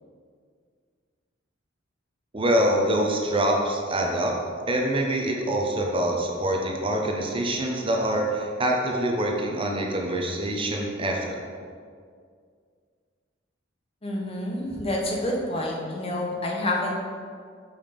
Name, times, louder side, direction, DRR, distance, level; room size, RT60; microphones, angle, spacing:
voice 1, 2.3-4.4 4.7-11.4, right 1 dB, 25° right, 0 dB, 0.7 m, -25 dB
voice 2, 14.0-16.9, left 1 dB, 30° left, -1 dB, 0.9 m, -28 dB
5.5 x 5.0 x 5.1 m, 2.1 s
head